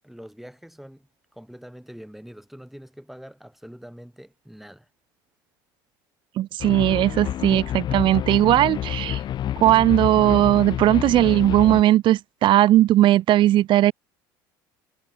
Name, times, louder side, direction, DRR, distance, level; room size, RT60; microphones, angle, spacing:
voice 1, 0.0-4.9, equal, ahead, 6.7 m, -44 dB
voice 2, 6.4-9.2 9.6-13.9, right 14 dB, 55° right, 0.7 m, -18 dB
sound 1, 6.6-11.8, left 11 dB, 45° left, 0.7 m, -28 dB
supercardioid pair, 90°, 10 cm